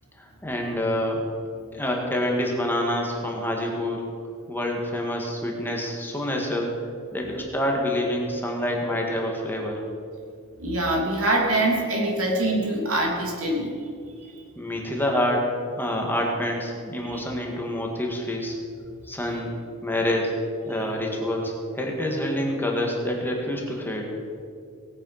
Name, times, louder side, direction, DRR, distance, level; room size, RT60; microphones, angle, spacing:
voice 1, 0.2-1.2 1.7-4.0 4.5-6.7 7.1-9.8 14.6-15.5 15.8-18.6 19.1-19.5 19.8-20.3 20.7-24.1, left 1 dB, 10° left, 0 dB, 2.0 m, -27 dB
voice 2, 10.6-13.7 17.0-17.2 18.8-18.9, right 1 dB, 70° right, -1 dB, 3.0 m, -24 dB
19.0 x 8.8 x 5.8 m, 2.3 s
head